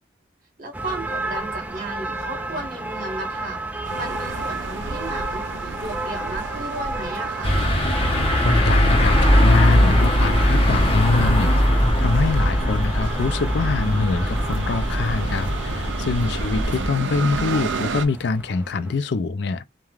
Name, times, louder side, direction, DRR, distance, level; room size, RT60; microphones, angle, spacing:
voice 1, 0.6-7.8 16.3-16.6, right 2 dB, 45° right, 1.4 m, -35 dB
sound 1, 0.7-18.9, right 2 dB, 10° right, 0.3 m, -32 dB
sound 2, 3.8-18.1, right 3 dB, 75° right, 0.4 m, -32 dB
sound 3, 7.4-16.9, equal, 30° left, 0.8 m, -20 dB
voice 2, 8.4-19.7, left 4 dB, 65° left, 0.4 m, -25 dB
3.2 x 2.2 x 2.3 m
head